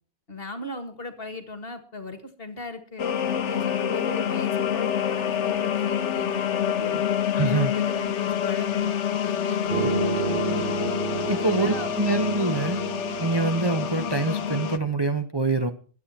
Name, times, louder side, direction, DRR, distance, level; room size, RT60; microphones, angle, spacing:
voice 1, 0.3-3.0 3.4-7.0 7.5-10.7 11.3-11.9, left 3 dB, 30° left, 10 dB, 1.9 m, -38 dB
sound 1, 3.0-14.8, left 9 dB, 50° left, 1.0 m, -27 dB
voice 2, 7.3-7.7 9.8-9.9 11.3-12.8 13.2-15.7, right 3 dB, 25° right, 6 dB, 0.6 m, -25 dB
sound 2, 9.7-14.9, right 5 dB, 40° right, 1.0 m, -31 dB
22.0 x 8.7 x 4.2 m, 0.40 s
omnidirectional pair, 2.1 m